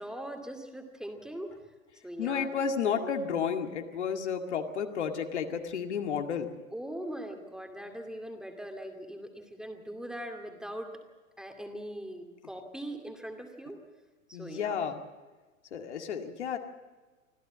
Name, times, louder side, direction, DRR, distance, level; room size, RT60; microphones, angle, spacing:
voice 1, 0.0-1.5 2.0-2.6 3.0-3.2 6.7-10.9 11.4-13.8 14.3-14.7, right 1 dB, ahead, 4 dB, 2.3 m, -41 dB
voice 2, 2.2-6.5 14.3-15.0 15.7-16.6, left 7 dB, 55° left, 5 dB, 2.2 m, -32 dB
25.5 x 15.5 x 7.2 m, 1.3 s
figure-of-eight pair, 105°, 40 cm